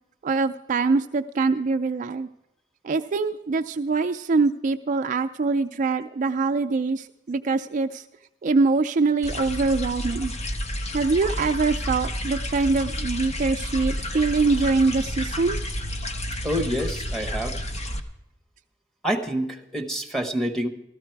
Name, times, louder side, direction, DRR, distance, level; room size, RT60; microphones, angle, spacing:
voice 1, 0.2-2.3 2.8-8.0 8.4-10.3 10.9-15.6, right 4 dB, 40° right, 7 dB, 0.4 m, -23 dB
sound 1, 9.2-18.0, equal, 35° left, 0.8 m, -30 dB
voice 2, 16.4-17.6 19.0-20.7, equal, ahead, 2 dB, 1.1 m, -27 dB
14.5 x 13.0 x 4.6 m, 0.89 s
head